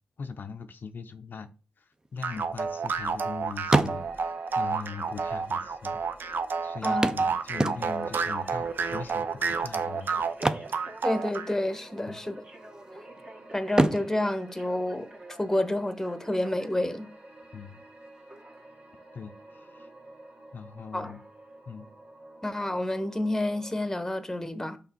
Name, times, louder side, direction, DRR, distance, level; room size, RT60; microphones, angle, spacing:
voice 1, 0.2-1.5 1.8-6.0 6.6-10.2 12.1-12.2 17.5-17.8 19.1-19.9 20.5-21.2 21.7-21.9, left 5 dB, 60° left, 0.6 m, -41 dB
sound 1, 2.0-3.3 3.6-4.4 5.4-5.5 5.7-5.8 7.0-8.2 10.3-11.6 11.8-12.1 12.6-13.2 13.7-15.4 17.4-17.5 18.0-18.1, right 2 dB, 20° right, 0.6 m, -28 dB
sound 2, 2.2-11.5, right 5 dB, 65° right, 0.7 m, -30 dB
sound 3, 3.8-23.8, right 1 dB, 35° right, 1.7 m, -49 dB
voice 2, 11.0-12.4 13.5-15.1 15.4-17.1 20.9-21.1 22.4-24.8, left 1 dB, 10° left, 1.0 m, -29 dB
5.7 x 4.0 x 4.4 m
cardioid pair, 60°, 4 cm